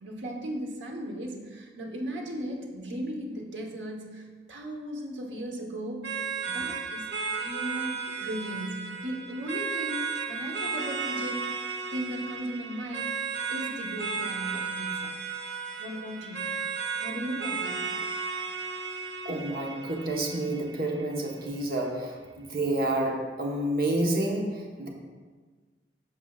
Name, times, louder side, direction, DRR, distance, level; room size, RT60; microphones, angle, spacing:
voice 1, 0.0-6.2 6.5-11.5 11.9-13.1 13.5-15.2 15.8-16.4 17.0-17.9, right 1 dB, 90° right, 0 dB, 1.1 m, -37 dB
sound 1, 6.0-21.0, right 5 dB, 75° right, 0.8 m, -34 dB
voice 2, 19.2-24.9, right 1 dB, 55° right, 0 dB, 1.1 m, -29 dB
13.5 x 4.9 x 2.4 m, 1.5 s
head